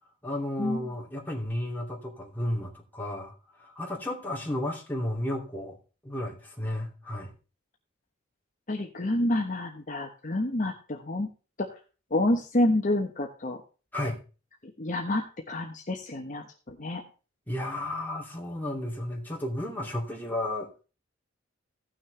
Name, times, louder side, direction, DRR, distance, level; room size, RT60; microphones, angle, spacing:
voice 1, 0.2-3.3 3.6-5.8 6.0-7.3 13.9-14.2 17.5-20.8, left 1 dB, 10° left, -2 dB, 2.6 m, -33 dB
voice 2, 8.7-11.3 11.6-11.7 12.1-13.6 14.8-17.0, left 1 dB, 40° left, 2 dB, 1.1 m, -28 dB
16.5 x 6.4 x 3.3 m, 0.35 s
head